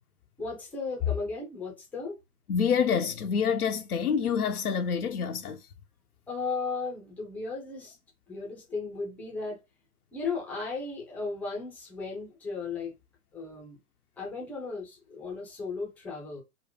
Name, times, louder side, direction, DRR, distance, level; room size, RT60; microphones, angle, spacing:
voice 1, 0.4-2.2 6.3-8.0 8.3-9.6 10.1-13.0 13.3-13.8 14.2-16.4, left 4 dB, 5° left, 0.5 m, -35 dB
voice 2, 2.5-5.6, left 6 dB, 75° left, 0.6 m, -27 dB
3.7 x 2.1 x 3.6 m
figure-of-eight pair, 115°, 45 cm